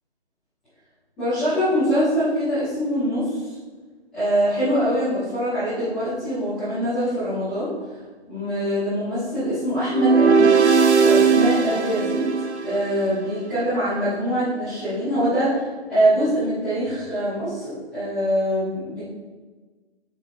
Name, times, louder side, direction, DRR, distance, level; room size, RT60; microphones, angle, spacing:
voice 1, 1.2-3.5 4.1-7.7 8.3-10.6 11.0-12.2 12.6-19.0, equal, ahead, -22 dB, 0.4 m, -23 dB
sound 1, 9.9-13.1, right 5 dB, 90° right, 0.8 m, -18 dB
6.5 x 5.8 x 4.5 m, 1.3 s
figure-of-eight pair, 150°, 33 cm